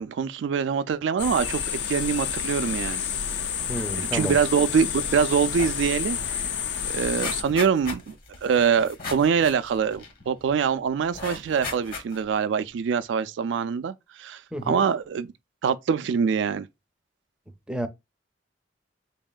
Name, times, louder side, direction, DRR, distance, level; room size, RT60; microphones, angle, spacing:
voice 1, 0.0-3.0 3.8-6.5 6.8-8.1 8.4-14.4 14.7-15.3 15.6-16.7, right 6 dB, 85° right, 0.3 m, -24 dB
sound 1, 1.2-7.4, left 8 dB, 75° left, 0.6 m, -29 dB
voice 2, 3.7-4.3 14.5-14.9 17.7-17.9, right 1 dB, 5° right, 0.5 m, -30 dB
sound 2, 5.0-5.2 5.5-5.8 6.2-6.3 6.6-10.5 11.1-12.4 12.9-13.0, left 3 dB, 55° left, 1.1 m, -37 dB
4.0 x 3.5 x 2.2 m
head